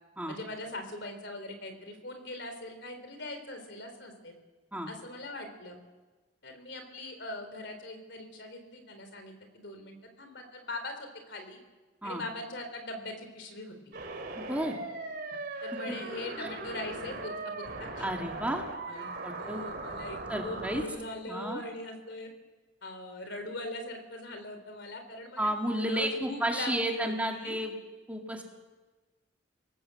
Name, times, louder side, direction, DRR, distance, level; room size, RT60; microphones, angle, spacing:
voice 1, 0.3-4.4 4.9-5.8 6.4-11.6 12.0-13.8 15.6-18.1 18.9-22.3 22.8-27.6, left 2 dB, 60° left, 6 dB, 3.7 m, -41 dB
sound 1, 13.9-20.9, right 2 dB, 50° right, 3.2 m, -39 dB
voice 2, 14.4-14.8 15.9-16.0 16.4-16.5 18.0-18.6 19.2-19.6 20.3-20.8 21.3-21.6 25.4-27.7 28.1-28.4, right 1 dB, 5° right, 2 dB, 2.1 m, -32 dB
26.0 x 18.5 x 7.7 m, 1.3 s
head